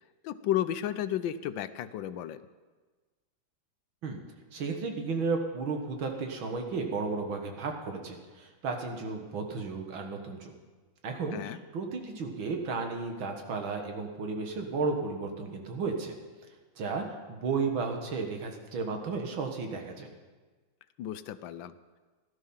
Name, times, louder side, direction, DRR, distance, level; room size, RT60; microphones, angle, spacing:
voice 1, 0.2-2.4 11.3-11.6 21.0-21.7, left 11 dB, 75° left, 13 dB, 1.4 m, -33 dB
voice 2, 4.5-10.5 11.0-16.2 16.8-20.1, right 4 dB, 85° right, 3 dB, 2.4 m, -33 dB
17.0 x 12.5 x 5.7 m, 1.3 s
omnidirectional pair, 2.1 m